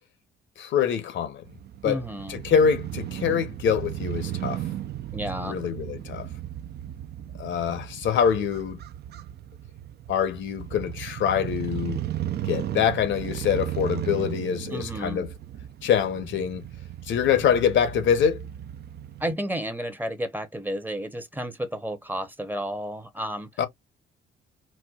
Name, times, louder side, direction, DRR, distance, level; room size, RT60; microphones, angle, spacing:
voice 1, 0.6-1.4 1.8-2.0 2.3-4.6 5.4-6.3 7.4-8.8 10.1-12.0 12.4-15.3 15.8-16.6 17.1-18.4 23.6-23.7, left 8 dB, 75° left, 0.8 m, -24 dB
Crow / Motorcycle, 1.4-19.3, right 12 dB, 55° right, 0.4 m, -35 dB
voice 2, 1.8-2.4 5.1-5.6 14.7-15.3 19.2-23.5, equal, 10° right, 0.7 m, -32 dB
4.2 x 2.2 x 2.3 m
cardioid pair, 90°, 20 cm